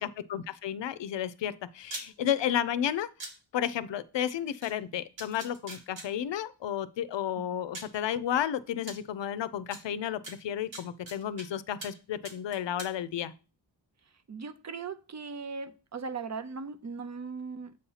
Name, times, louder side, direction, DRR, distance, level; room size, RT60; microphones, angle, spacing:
voice 1, 0.0-3.1 3.5-13.3, left 10 dB, 75° left, 0.5 m, -32 dB
sound 1, 1.8-2.1 3.2-3.3 4.6-4.7 5.2-6.1 7.1-7.2 7.7-8.0 8.9-9.0 9.7-9.8 10.2-11.5 11.8-12.0 12.2-12.9, right 2 dB, 80° right, 1.9 m, -41 dB
voice 2, 14.3-17.8, right 5 dB, 40° right, 0.5 m, -38 dB
7.6 x 2.8 x 5.5 m
wide cardioid pair, 120°, 43 cm